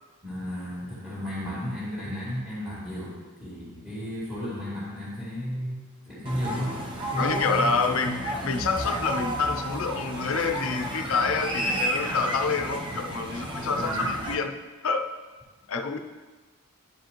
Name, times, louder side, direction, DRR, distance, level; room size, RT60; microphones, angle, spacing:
voice 1, 0.2-6.8 7.1-7.7 13.6-14.1, equal, 5° right, -11 dB, 2.4 m, -33 dB
sound 1, 6.3-14.4, right 1 dB, 20° right, 0.7 m, -32 dB
voice 2, 7.2-14.5 14.8-15.1 15.7-16.0, left 4 dB, 65° left, 6 dB, 0.5 m, -27 dB
10.5 x 5.0 x 3.0 m, 1.3 s
head